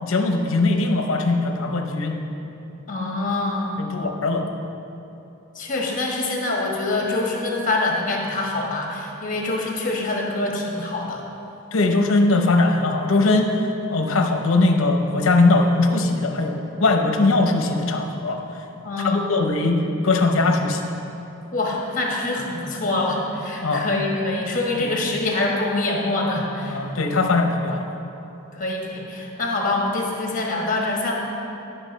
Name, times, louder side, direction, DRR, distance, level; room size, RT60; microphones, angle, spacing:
voice 1, 0.0-2.2 3.8-4.5 11.7-13.6 13.9-18.6 19.0-20.9 23.6-23.9 24.8-24.9 26.7-27.9, left 2 dB, 65° left, 4 dB, 0.8 m, -20 dB
voice 2, 2.9-3.8 5.5-11.2 18.8-19.3 21.5-26.8 28.5-31.1, left 2 dB, 35° left, -1 dB, 1.3 m, -25 dB
11.5 x 5.8 x 4.0 m, 2.9 s
head